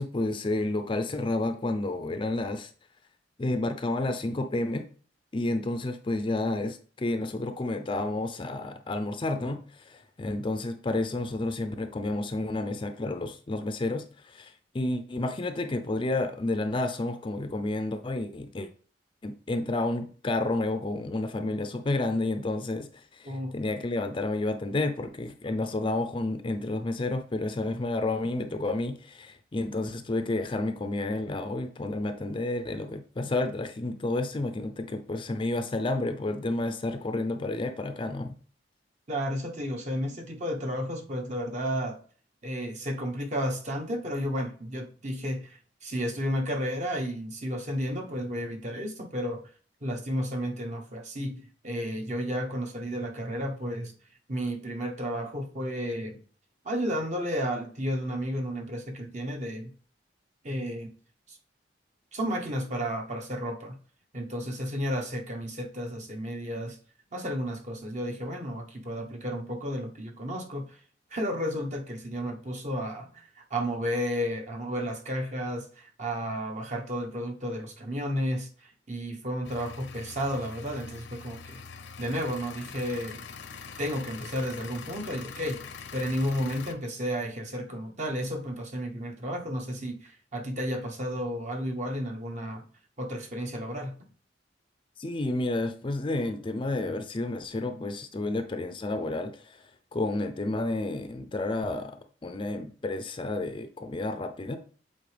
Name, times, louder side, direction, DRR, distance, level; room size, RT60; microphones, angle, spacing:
voice 1, 0.0-2.7 3.4-4.8 5.3-18.7 19.2-38.3 95.0-104.6, left 2 dB, 30° left, 0.4 m, -30 dB
voice 2, 23.2-23.6 39.1-42.0 42.4-49.5 49.8-53.9 54.3-56.2 56.6-59.7 60.4-60.9 61.3-61.4 62.1-63.8 64.1-66.8 67.1-70.8 71.1-81.6 82.0-83.2 83.8-85.7 85.9-92.7 93.0-94.1, equal, 40° right, 1.0 m, -32 dB
sound 1, 79.4-86.7, left 5 dB, 80° left, 0.7 m, -44 dB
7.6 x 4.2 x 3.3 m
head